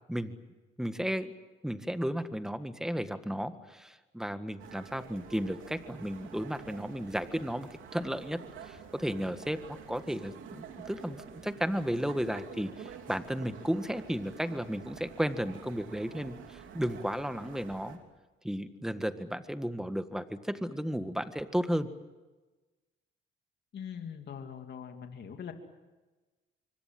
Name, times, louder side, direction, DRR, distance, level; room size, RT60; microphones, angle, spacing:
voice 1, 0.8-1.3 1.6-9.6 9.9-18.0 18.4-21.9, equal, 5° right, 10 dB, 1.7 m, -34 dB
sound 1, 4.6-18.0, right 8 dB, 85° right, 3.3 m, -49 dB
voice 2, 23.7-25.5, left 7 dB, 60° left, 5 dB, 2.9 m, -42 dB
26.5 x 24.0 x 7.8 m, 1.2 s
cardioid pair, 90°, 20 cm